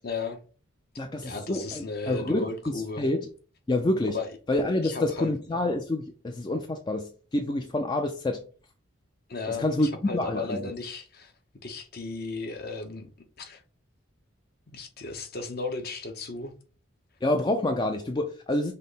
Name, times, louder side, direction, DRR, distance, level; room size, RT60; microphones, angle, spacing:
voice 1, 0.0-0.4 1.2-3.0 4.1-4.3 4.8-5.3 9.3-11.3 11.6-13.1 13.4-13.6 14.7-16.5, left 3 dB, 45° left, 0.7 m, -35 dB
voice 2, 1.0-3.3 3.7-4.2 4.5-8.4 9.5-10.6 17.2-18.7, left 1 dB, 20° left, 0.4 m, -27 dB
5.5 x 2.1 x 3.9 m
head